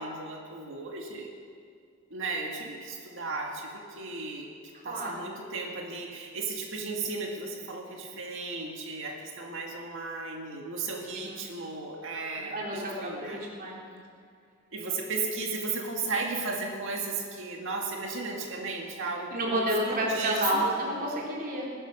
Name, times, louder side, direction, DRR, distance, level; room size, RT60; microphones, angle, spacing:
voice 1, 0.0-1.4 2.1-4.5 4.8-13.4 14.7-20.7, right 3 dB, 65° right, 0 dB, 1.9 m, -35 dB
voice 2, 4.8-5.2 11.1-11.4 12.5-13.8 19.3-21.7, right 1 dB, 45° right, -3 dB, 3.6 m, -30 dB
20.5 x 11.0 x 6.2 m, 2.2 s
head